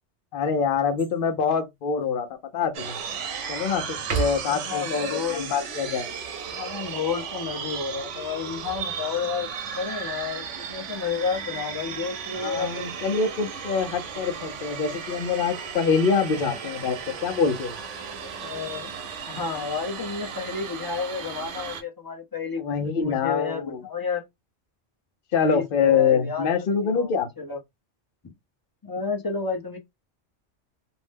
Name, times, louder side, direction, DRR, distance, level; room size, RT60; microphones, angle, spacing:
voice 1, 0.3-2.3 2.5-3.0 3.5-6.1 12.3-17.8 22.6-23.8 25.3-27.3, left 6 dB, 55° left, 0.7 m, -25 dB
sound 1, 1.0-1.4 2.0-2.1 2.6-3.5 4.0-4.7 8.2-9.6 11.0-11.5, right 6 dB, 60° right, 1.0 m, -35 dB
sound 2, 2.7-21.8, right 6 dB, 90° right, 1.0 m, -35 dB
voice 2, 4.5-5.9 6.5-9.5 9.7-12.9 18.2-18.9 19.3-22.7 23.0-24.2 25.3-27.1 27.4-27.6 28.8-29.8, left 5 dB, 25° left, 0.6 m, -31 dB
2.7 x 2.1 x 3.3 m
omnidirectional pair, 1.2 m